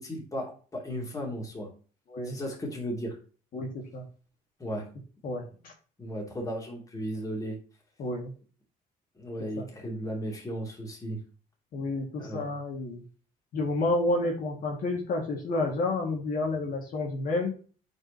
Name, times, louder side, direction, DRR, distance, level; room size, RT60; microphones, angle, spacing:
voice 1, 0.0-1.7 2.2-3.2 4.6-4.9 6.0-7.6 9.2-11.2 12.2-12.5, equal, 20° left, -1 dB, 2.9 m, -35 dB
voice 2, 3.5-4.0 5.2-5.7 8.0-8.3 9.4-9.7 11.7-13.0 13.5-17.5, left 2 dB, 55° left, -1 dB, 2.2 m, -30 dB
8.6 x 5.0 x 3.0 m, 0.38 s
cardioid pair, 110°, 17 cm